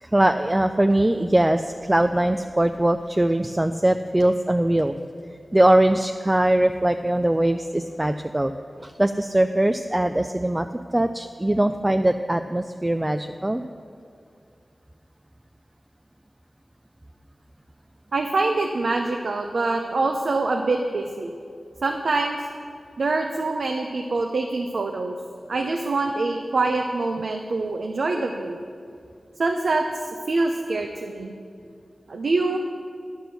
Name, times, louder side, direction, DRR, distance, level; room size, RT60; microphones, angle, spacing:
voice 1, 0.0-4.9 5.5-8.5 8.8-10.7 10.9-13.6, right 1 dB, 15° right, 7 dB, 0.3 m, -21 dB
voice 2, 18.1-21.3 21.8-22.4 23.0-25.2 25.5-28.6 29.4-29.9 30.3-31.3 32.1-32.6, right 3 dB, 80° right, 3 dB, 0.7 m, -25 dB
11.0 x 6.1 x 6.8 m, 2.3 s
wide cardioid pair, 90°, 0 cm